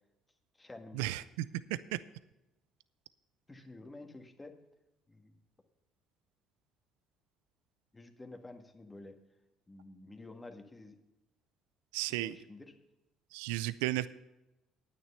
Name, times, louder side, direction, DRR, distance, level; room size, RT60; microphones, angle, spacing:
voice 1, 0.5-1.1 3.5-4.6 5.1-5.4 7.9-9.2 9.7-11.0 12.1-12.7, left 2 dB, 20° left, 5 dB, 1.7 m, -50 dB
voice 2, 11.9-12.3 13.3-14.1, right 17 dB, 85° right, 16 dB, 0.4 m, -33 dB
9.5 x 9.2 x 5.6 m, 0.94 s
supercardioid pair, 70°, 0 cm